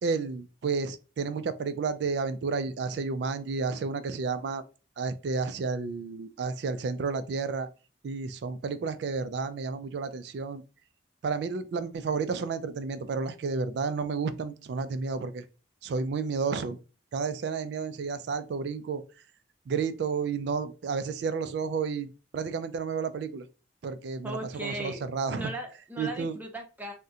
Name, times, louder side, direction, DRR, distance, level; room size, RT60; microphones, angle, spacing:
voice 1, 0.0-4.6 5.0-7.7 8.0-10.6 11.2-15.5 15.8-16.8 17.1-19.0 19.7-23.5 23.8-25.5 26.0-26.4, right 5 dB, 60° right, 0.3 m, -31 dB
voice 2, 24.2-25.1 25.3-26.9, right 1 dB, 10° right, 0.6 m, -37 dB
3.6 x 2.1 x 2.6 m
head